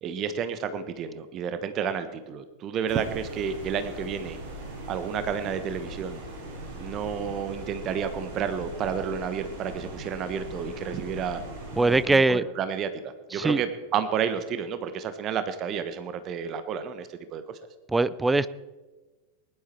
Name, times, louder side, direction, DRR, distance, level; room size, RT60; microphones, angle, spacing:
voice 1, 0.0-4.4 4.9-6.2 6.8-11.4 11.8-17.6, right 7 dB, 35° right, 11 dB, 1.1 m, -31 dB
sound 1, 2.9-12.0, right 1 dB, 55° right, 4.9 m, -40 dB
voice 2, 11.8-12.5 13.3-13.6 17.9-18.5, right 3 dB, 10° right, 17 dB, 0.5 m, -22 dB
19.5 x 11.5 x 4.4 m, 1.2 s
figure-of-eight pair, 90°, 0 cm